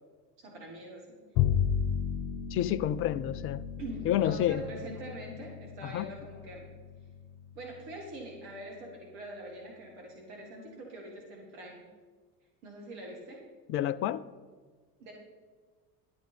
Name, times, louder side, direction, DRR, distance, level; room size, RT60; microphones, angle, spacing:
voice 1, 0.4-1.2 3.8-6.7 7.5-11.8 12.6-13.4 15.0-15.1, right 1 dB, 55° right, -1 dB, 2.3 m, -44 dB
Bowed string instrument, 1.3-7.8, left 8 dB, 55° left, 0.8 m, -34 dB
voice 2, 2.5-3.6 4.1-4.6 5.8-6.1 13.7-14.2, left 11 dB, 30° left, 15 dB, 0.3 m, -29 dB
11.5 x 8.1 x 5.4 m, 1.5 s
figure-of-eight pair, 65°, 49 cm